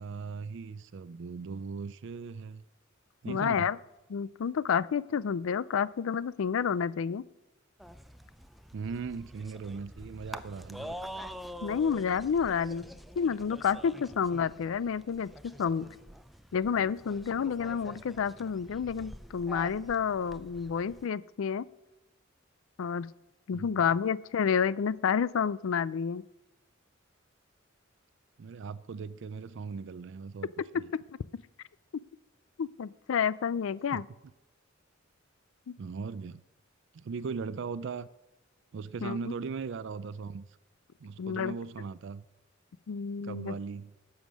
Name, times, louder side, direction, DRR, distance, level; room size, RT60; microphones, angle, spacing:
voice 1, 0.0-2.6 3.2-3.7 8.7-11.0 23.5-24.0 28.4-30.9 33.9-34.0 35.8-36.4 36.9-38.1 38.7-40.5 41.0-42.3 43.2-43.9, right 5 dB, 65° right, 0.4 m, -39 dB
voice 2, 3.3-3.8 4.1-7.2 11.6-12.8 13.2-15.3 15.6-15.9 16.5-21.6 22.8-23.1 23.5-26.2 30.9-31.0 32.6-34.0 35.7-35.8 39.0-39.3 41.2-41.5 42.9-43.5, left 7 dB, 75° left, 0.4 m, -29 dB
sound 1, 7.8-21.1, equal, ahead, 0.4 m, -46 dB
11.5 x 7.2 x 6.3 m
head